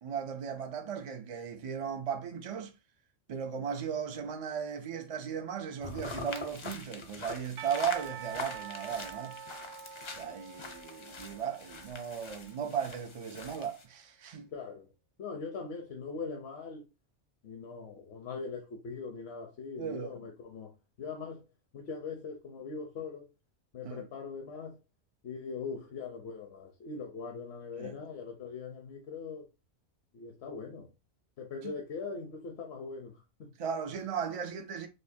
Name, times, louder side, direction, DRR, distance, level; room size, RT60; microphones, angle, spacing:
voice 1, 0.0-2.7 3.3-9.4 10.2-14.5 19.8-20.2 23.8-24.1 27.8-28.0 31.6-31.7 33.6-34.9, right 7 dB, 65° right, 0.3 m, -36 dB
sound 1, 5.8-13.8, left 4 dB, 40° left, 0.4 m, -44 dB
Percussion / Church bell, 7.6-12.6, right 9 dB, 85° right, 0.9 m, -46 dB
voice 2, 14.5-14.9 15.2-16.8 17.4-20.7 21.0-21.4 21.7-23.3 23.7-24.8 25.2-29.5 30.1-30.9 31.4-33.1 33.4-33.5, left 4 dB, 70° left, 0.9 m, -41 dB
5.1 x 2.0 x 2.6 m
omnidirectional pair, 1.2 m